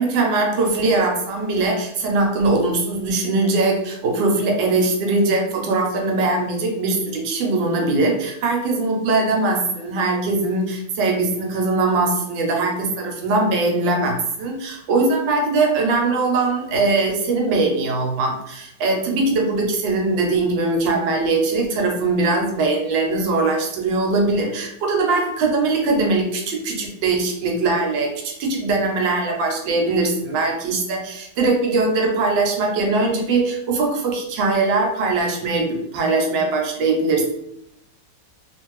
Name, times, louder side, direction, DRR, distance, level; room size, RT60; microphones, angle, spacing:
voice 1, 0.0-37.3, right 3 dB, 80° right, 1 dB, 1.4 m, -21 dB
3.1 x 2.5 x 3.0 m, 0.80 s
omnidirectional pair, 2.1 m